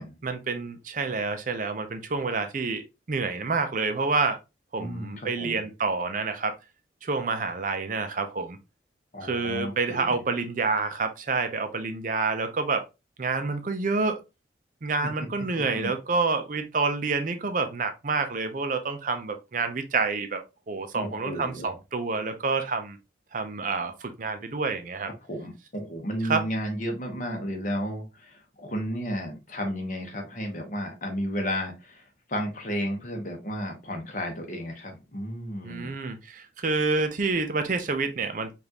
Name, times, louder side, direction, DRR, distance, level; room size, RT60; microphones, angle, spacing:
voice 1, 0.2-4.4 4.7-6.5 7.0-8.6 9.2-12.8 13.2-14.2 14.8-20.4 20.7-23.0 23.3-25.1 26.2-26.4 35.6-38.5, right 4 dB, 45° right, 7 dB, 0.5 m, -28 dB
voice 2, 4.8-5.6 9.1-10.2 15.0-15.1 15.7-15.9 20.9-21.7 25.2-32.0 32.3-35.9, equal, 45° left, 3 dB, 1.0 m, -33 dB
5.1 x 2.5 x 2.8 m, 0.26 s
head